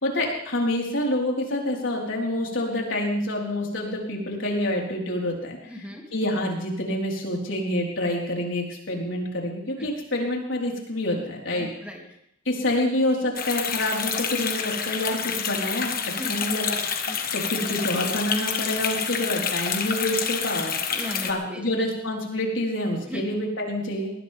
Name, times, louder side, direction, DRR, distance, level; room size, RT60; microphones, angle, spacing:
voice 1, 0.0-5.6 6.1-11.7 12.4-20.8 21.2-24.1, left 1 dB, 75° left, -1 dB, 4.5 m, -27 dB
voice 2, 5.7-6.0 9.8-9.9 11.6-12.0 16.2-16.4 17.1-17.2 20.9-21.6 23.1-23.3, left 1 dB, 5° right, 0 dB, 2.7 m, -36 dB
sound 1, 13.4-21.3, left 7 dB, 50° left, 1.5 m, -28 dB
21.0 x 18.5 x 3.6 m, 0.75 s
head